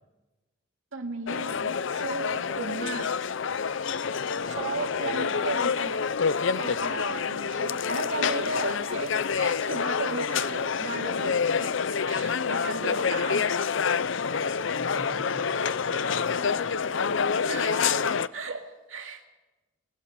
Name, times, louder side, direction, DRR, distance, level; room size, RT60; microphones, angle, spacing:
voice 1, 0.9-3.1 4.5-6.0 6.5-13.6 17.5-19.3, right 3 dB, 80° right, 5 dB, 2.4 m, -35 dB
sound 1, 1.3-18.3, left 6 dB, 70° left, 0.6 m, -27 dB
voice 2, 4.2-5.3 14.6-16.9, left 1 dB, 50° left, 3 dB, 5.9 m, -42 dB
29.0 x 22.0 x 4.3 m, 1.1 s
head